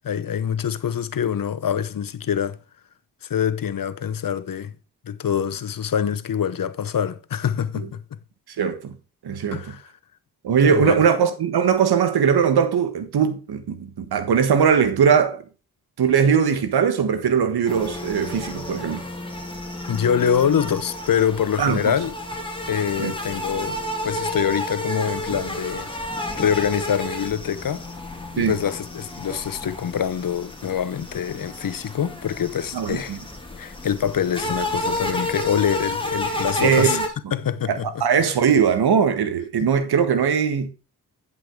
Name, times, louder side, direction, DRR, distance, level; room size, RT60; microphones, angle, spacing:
voice 1, 0.0-2.6 3.2-4.7 5.0-8.0 9.5-9.9 10.6-11.0 19.9-22.2 22.7-25.9 26.4-27.8 28.3-33.2 33.6-37.0 37.3-38.3, left 8 dB, 60° left, 1.0 m, -25 dB
voice 2, 8.6-8.9 9.2-9.6 10.4-15.4 16.0-19.0 21.6-21.9 23.0-23.1 28.4-28.5 32.7-33.2 36.6-37.0 37.7-40.7, right 7 dB, 80° right, 1.6 m, -20 dB
sound 1, 17.7-37.1, left 1 dB, 15° left, 2.6 m, -31 dB
10.5 x 5.7 x 4.7 m
cardioid pair, 60°, 38 cm